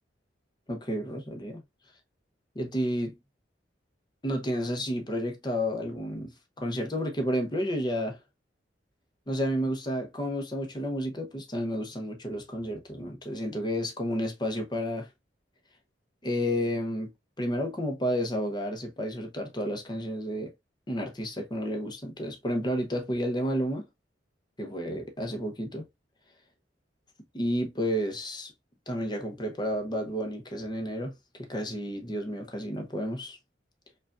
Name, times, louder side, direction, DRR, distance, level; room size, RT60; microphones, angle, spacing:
voice 1, 0.7-1.6 2.5-3.2 4.2-8.2 9.3-15.1 16.2-17.1 17.4-20.5 20.9-23.9 24.6-25.9 27.3-28.5 28.9-31.1 31.4-33.4, equal, 25° left, 0.8 m, -31 dB
4.8 x 2.5 x 2.5 m
head